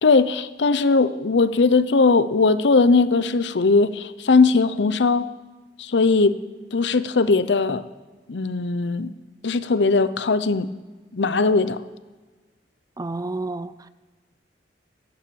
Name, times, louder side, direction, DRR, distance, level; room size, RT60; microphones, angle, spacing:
voice 1, 0.0-5.3 5.8-6.3 6.7-7.8 8.3-9.1 9.4-10.7 11.1-11.8, left 4 dB, 75° left, 14 dB, 0.7 m, -19 dB
voice 2, 13.0-13.9, right 2 dB, 20° right, 15 dB, 0.4 m, -30 dB
14.0 x 11.5 x 7.0 m, 1.3 s
head